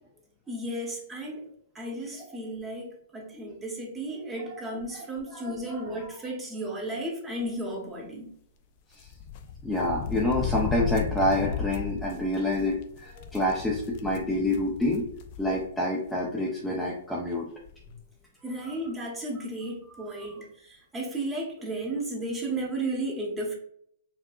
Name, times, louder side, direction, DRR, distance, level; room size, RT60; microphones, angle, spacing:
voice 1, 0.5-1.4 1.7-8.3 18.4-23.5, right 1 dB, 15° right, -1 dB, 1.2 m, -34 dB
voice 2, 5.3-5.9 9.6-15.0 15.4-17.5 19.9-20.3, left 1 dB, 5° left, -5 dB, 0.6 m, -28 dB
sound 1, 9.0-15.7 16.1-16.2 17.3-17.4 17.6-17.9, left 7 dB, 45° left, 0.4 m, -35 dB
4.4 x 2.7 x 2.4 m, 0.66 s
hypercardioid pair, 120°, 0 cm